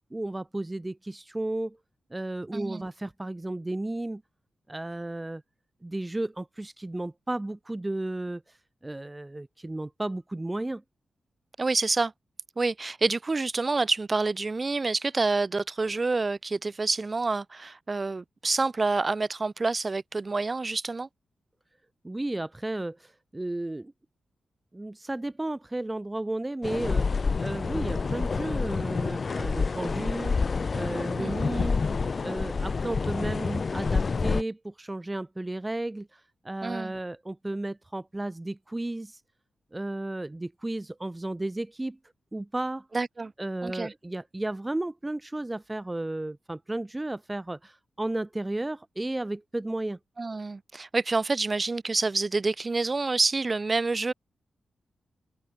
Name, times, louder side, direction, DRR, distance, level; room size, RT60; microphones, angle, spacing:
voice 1, 0.1-1.8 2.1-4.2 4.7-5.4 5.8-8.6 8.8-10.8 22.0-23.9 24.7-30.4 30.7-31.8 32.2-39.2 39.7-42.0 42.3-42.9 43.4-50.0, right 2 dB, 20° right, 4.4 m, -33 dB
voice 2, 2.5-2.8 11.6-12.1 12.6-21.1 31.2-31.4 36.6-36.9 42.9-43.3 43.6-43.9 50.2-54.1, right 3 dB, 40° right, 5.9 m, -27 dB
sound 1, 26.6-34.4, left 4 dB, 50° left, 5.8 m, -28 dB
open air
cardioid pair, 50°, 0 cm